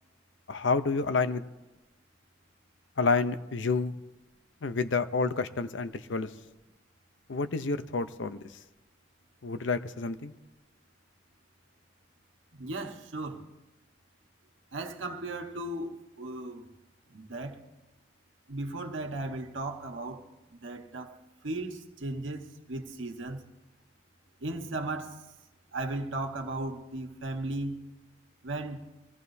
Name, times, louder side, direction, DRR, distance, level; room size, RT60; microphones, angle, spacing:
voice 1, 0.5-1.4 3.0-3.9 4.6-6.3 7.3-8.4 9.4-10.3, left 4 dB, 70° left, 0.7 m, -29 dB
voice 2, 12.5-13.5 14.7-16.7 17.1-17.6 18.5-20.2 20.5-23.4 24.4-25.2 25.7-27.8 28.4-28.9, right 2 dB, 80° right, 1.4 m, -36 dB
23.0 x 16.0 x 2.7 m
head